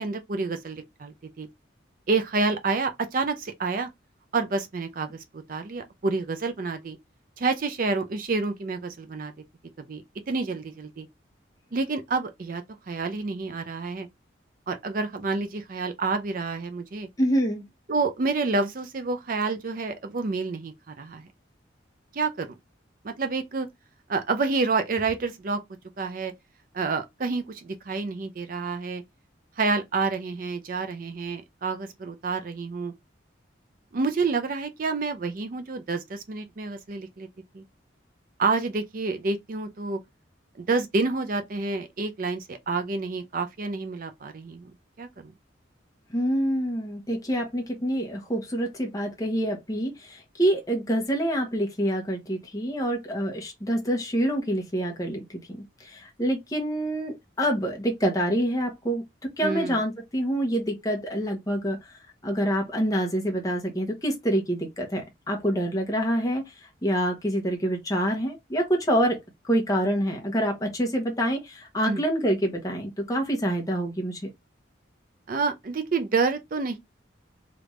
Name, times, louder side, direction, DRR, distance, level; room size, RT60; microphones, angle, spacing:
voice 1, 0.0-1.5 2.1-3.9 4.3-7.0 7.4-9.3 9.9-10.0 10.3-11.1 11.7-14.1 14.7-17.1 17.9-21.3 22.1-22.6 23.0-23.7 24.1-25.6 26.0-26.3 26.7-29.0 29.6-32.9 33.9-37.3 37.5-37.6 38.4-40.0 40.6-45.3 59.4-59.8 71.9-72.0 75.3-76.8, right 4 dB, 45° right, 0.4 m, -28 dB
voice 2, 17.2-17.6 46.1-55.4 55.8-59.0 59.4-61.8 62.2-66.5 66.8-69.2 69.4-74.3, equal, 20° left, 0.8 m, -26 dB
3.4 x 2.4 x 3.1 m
head